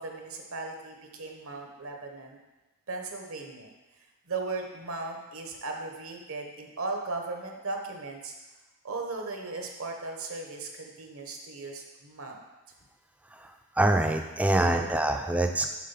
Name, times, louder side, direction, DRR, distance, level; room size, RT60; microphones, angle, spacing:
voice 1, 0.0-2.4 2.9-3.7 4.3-8.3 8.8-12.4 14.5-14.9, right 3 dB, 70° right, 2 dB, 1.0 m, -37 dB
voice 2, 13.8-15.7, right 1 dB, 5° right, 5 dB, 0.4 m, -24 dB
7.5 x 3.6 x 5.7 m, 1.1 s
head